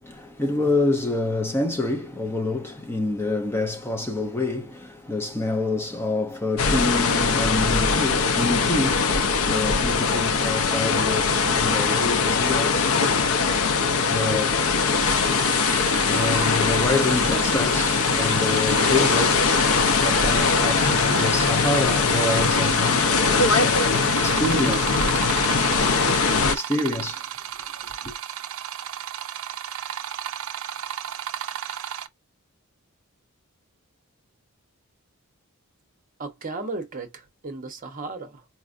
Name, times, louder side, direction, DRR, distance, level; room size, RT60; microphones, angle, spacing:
voice 1, 0.0-13.3 13.9-19.5 20.0-23.8 24.2-24.8 26.1-27.3 28.0-28.1, left 2 dB, 10° left, 0.5 m, -27 dB
sound 1, 6.6-26.6, left 5 dB, 75° left, 0.6 m, -21 dB
sound 2, 15.0-32.1, right 10 dB, 65° right, 0.4 m, -34 dB
voice 2, 36.2-38.5, right 3 dB, 40° right, 0.8 m, -35 dB
4.2 x 2.3 x 2.5 m
head